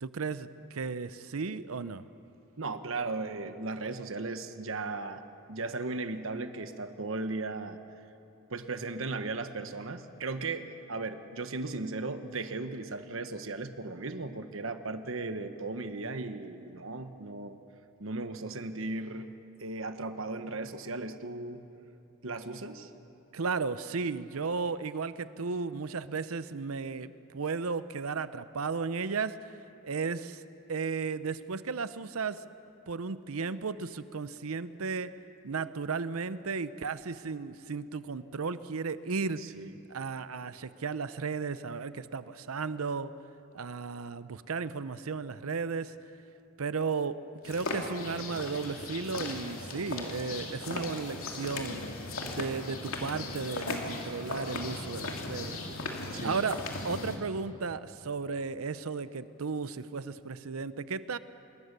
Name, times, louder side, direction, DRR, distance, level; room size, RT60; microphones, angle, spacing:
voice 1, 0.0-2.0 23.3-29.4 29.8-30.4 30.7-32.5 32.9-35.1 35.4-39.4 39.9-43.1 43.5-45.9 46.6-51.8 52.2-55.6 56.2-61.2, right 4 dB, 85° right, 14 dB, 0.7 m, -34 dB
voice 2, 2.6-5.2 5.5-7.8 8.5-17.6 18.0-19.3 19.6-21.6 22.2-22.9 39.4-39.7 56.1-56.4, right 3 dB, 65° right, 9 dB, 1.2 m, -36 dB
sound 1, 47.4-57.2, left 2 dB, 75° left, 2.8 m, -37 dB
26.0 x 21.5 x 6.8 m, 2.8 s
head